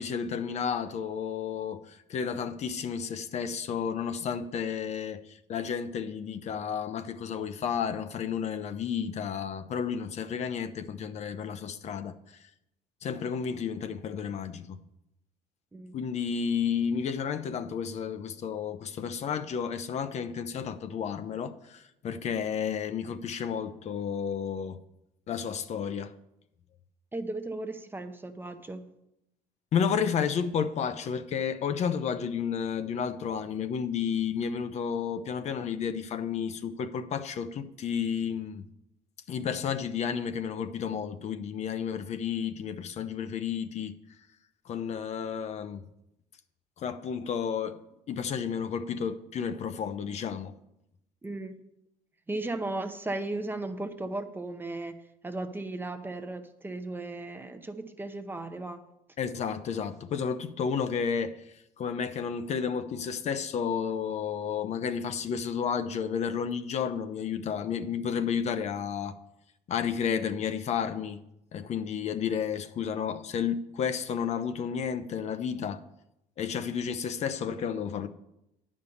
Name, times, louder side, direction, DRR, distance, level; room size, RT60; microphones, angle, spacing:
voice 1, 0.0-12.2 13.0-14.8 15.9-24.8 25.3-26.1 29.7-38.6 39.3-43.9 44.7-45.8 46.8-47.8 48.1-50.5 59.2-61.3 61.8-69.2 69.7-71.2 71.5-75.8 76.4-78.1, left 7 dB, 50° left, 0.6 m, -32 dB
voice 2, 27.1-28.9 51.2-51.6 52.3-55.0 55.2-58.8, right 2 dB, 15° right, 0.7 m, -36 dB
9.5 x 5.3 x 6.9 m
cardioid pair, 115°, 15 cm